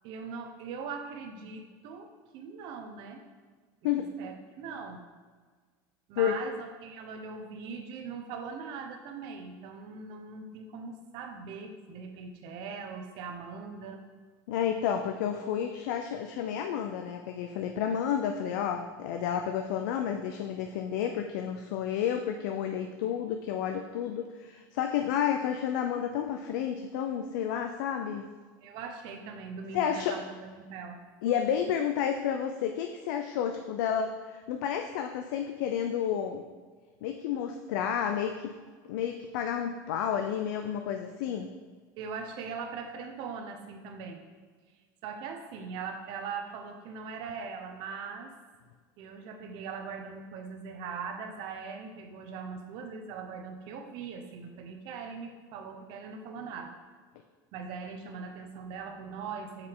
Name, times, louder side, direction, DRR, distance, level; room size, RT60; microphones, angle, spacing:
voice 1, 0.0-2.1 2.3-3.2 3.8-5.0 6.1-14.0 17.7-18.1 28.6-31.0 42.0-44.2 45.0-48.3 49.0-56.8 57.5-59.7, right 5 dB, 55° right, 4 dB, 0.8 m, -41 dB
voice 2, 14.5-28.2 29.7-30.2 31.2-36.4 37.0-38.5 38.9-41.5, left 8 dB, 85° left, 5 dB, 0.4 m, -31 dB
6.4 x 4.9 x 3.7 m, 1.5 s
supercardioid pair, 155°, 10 cm